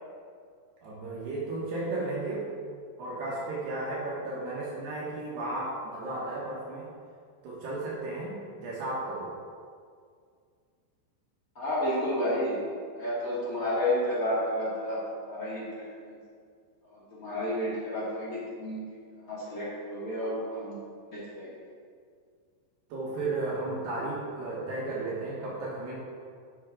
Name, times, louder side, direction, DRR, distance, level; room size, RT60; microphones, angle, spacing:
voice 1, 0.8-2.5 3.0-6.9 7.4-9.3 22.9-25.9, right 2 dB, 70° right, -6 dB, 3.3 m, -34 dB
voice 2, 11.5-12.6 12.9-16.2 16.8-18.8 19.3-20.8 21.1-21.6, left 1 dB, 30° left, -9 dB, 1.6 m, -31 dB
10.5 x 7.5 x 3.7 m, 2.1 s
omnidirectional pair, 5.2 m